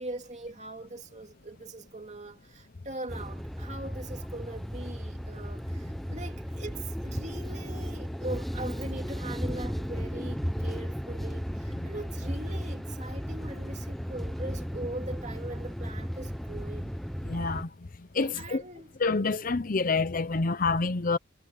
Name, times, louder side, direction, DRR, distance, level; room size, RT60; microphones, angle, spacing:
voice 1, 0.0-16.9 18.2-18.9, right 2 dB, 35° right, 2.7 m, -41 dB
sound 1, 3.1-17.6, equal, ahead, 0.8 m, -35 dB
voice 2, 17.2-17.7 18.1-18.6 19.0-21.2, left 3 dB, 40° left, 0.7 m, -27 dB
head